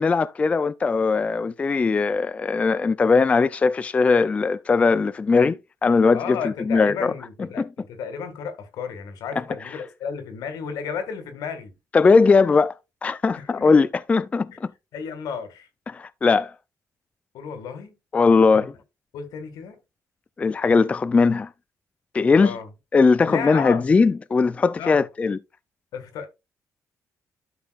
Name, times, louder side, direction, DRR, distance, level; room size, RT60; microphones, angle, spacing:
voice 1, 0.0-7.1 7.6-7.7 11.9-12.7 13.0-14.7 15.9-16.5 18.1-18.7 20.4-21.5 22.1-22.6 22.9-25.4, left 4 dB, 20° left, 0.3 m, -19 dB
voice 2, 6.1-11.7 13.3-13.9 14.5-14.6 14.9-15.7 17.3-17.9 18.5-18.7 19.1-19.8 22.4-22.7 23.2-23.9 24.8-25.0 25.9-26.3, left 6 dB, 85° left, 2.0 m, -33 dB
12.0 x 5.7 x 2.4 m
cardioid pair, 140°, 6 cm